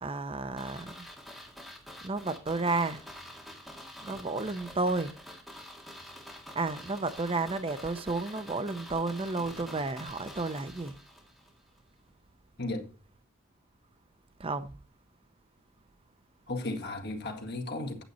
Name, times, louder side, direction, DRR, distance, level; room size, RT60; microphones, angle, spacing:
voice 1, 0.0-1.1 2.0-3.0 4.0-5.1 6.5-10.9 14.4-14.7, right 3 dB, 25° right, 0.6 m, -32 dB
sound 1, 0.6-11.5 11.8-11.9, equal, ahead, 2.0 m, -47 dB
voice 2, 12.6-12.9 16.5-18.0, left 2 dB, 50° left, 1.9 m, -35 dB
8.9 x 8.2 x 4.1 m
head